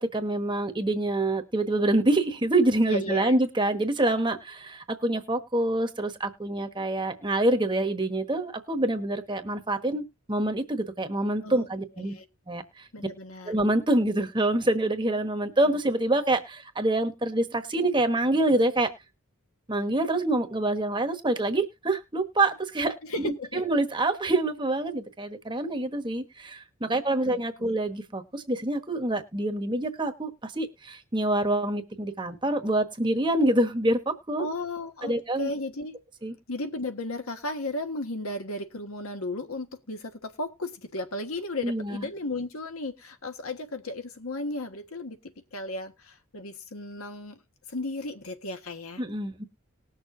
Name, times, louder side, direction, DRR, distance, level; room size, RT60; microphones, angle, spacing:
voice 1, 0.0-12.1 12.5-12.6 13.5-18.9 19.7-34.5 35.0-35.5 36.2-36.3 41.6-42.0 49.0-49.4, right 1 dB, 20° right, 7 dB, 1.2 m, -26 dB
voice 2, 2.8-3.4 11.4-11.7 12.0-12.3 12.9-13.5 23.0-23.6 27.2-27.7 34.4-35.9 36.5-45.2 45.5-47.4 47.7-49.0, left 2 dB, 75° left, 6 dB, 1.4 m, -35 dB
19.5 x 6.7 x 2.7 m, 0.25 s
head